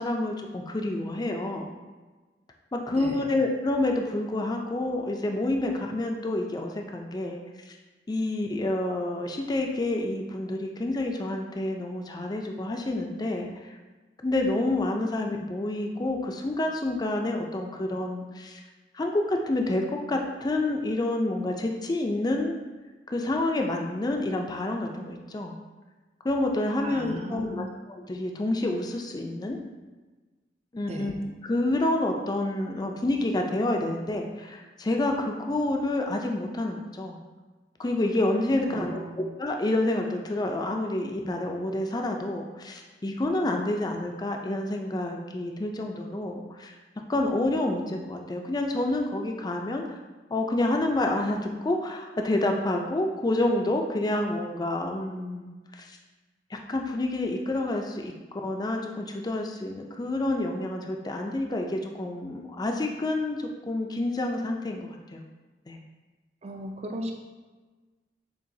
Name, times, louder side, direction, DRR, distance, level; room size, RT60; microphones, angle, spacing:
voice 1, 0.0-1.7 2.7-7.4 8.1-13.5 14.2-18.6 18.9-22.6 23.1-25.6 26.2-29.6 30.7-37.2 37.8-46.7 47.1-49.8 50.3-56.0 56.5-58.1 58.4-65.2 65.7-65.8, left 2 dB, 25° left, 2 dB, 0.4 m, -28 dB
voice 2, 2.9-3.4 26.8-27.7 30.9-31.1 38.7-39.2 66.4-67.1, equal, 40° right, 2 dB, 0.5 m, -37 dB
6.8 x 2.9 x 2.7 m, 1.3 s
head